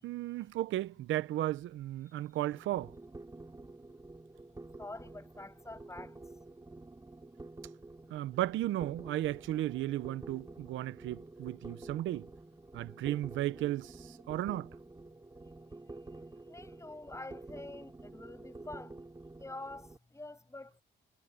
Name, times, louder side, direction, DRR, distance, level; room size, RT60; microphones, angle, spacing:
voice 1, 0.0-2.9 8.1-12.3 12.7-14.7, right 14 dB, 80° right, 0.7 m, -35 dB
sound 1, 2.5-20.0, right 2 dB, 15° right, 5.5 m, -50 dB
voice 2, 4.8-6.1 16.5-19.0 19.4-20.8, left 2 dB, 15° left, 7.7 m, -46 dB
cardioid pair, 90°, 20 cm